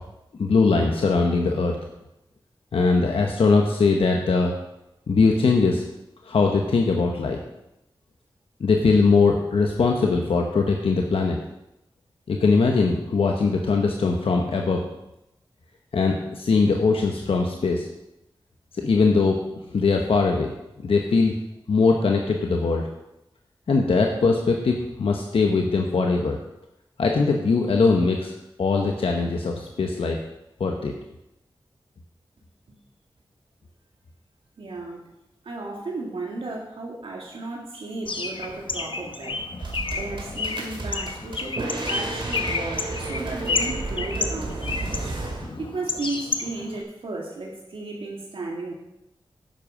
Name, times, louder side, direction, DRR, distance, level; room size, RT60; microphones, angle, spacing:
voice 1, 0.4-1.8 2.7-4.5 5.1-5.8 6.2-7.4 8.6-11.4 12.3-14.8 15.9-17.9 18.7-19.4 19.7-20.5 20.8-21.3 21.7-22.9 23.7-26.4 27.0-28.3 28.6-30.2 30.6-30.9, left 4 dB, 90° left, 1 dB, 1.0 m, -21 dB
voice 2, 34.6-35.0 35.4-39.4 39.9-44.6 45.6-48.7, right 2 dB, 85° right, -1 dB, 2.0 m, -34 dB
Bird, 38.0-46.8, left 4 dB, 65° left, 1.0 m, -31 dB
sound 1, 39.6-45.5, right 2 dB, 65° right, 2.2 m, -32 dB
10.5 x 7.8 x 5.0 m, 0.88 s
wide cardioid pair, 65°, 9 cm